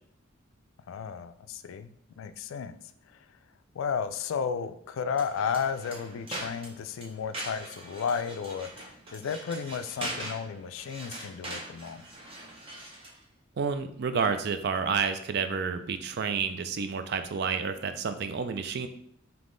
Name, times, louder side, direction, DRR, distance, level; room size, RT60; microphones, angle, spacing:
voice 1, 0.9-2.7 3.1-3.2 3.8-12.0, left 6 dB, 80° left, 11 dB, 0.3 m, -33 dB
sound 1, 5.1-13.2, right 1 dB, 25° right, 0.7 m, -42 dB
voice 2, 13.6-18.9, right 5 dB, 55° right, 9 dB, 0.4 m, -30 dB
3.6 x 2.9 x 3.8 m, 0.67 s
head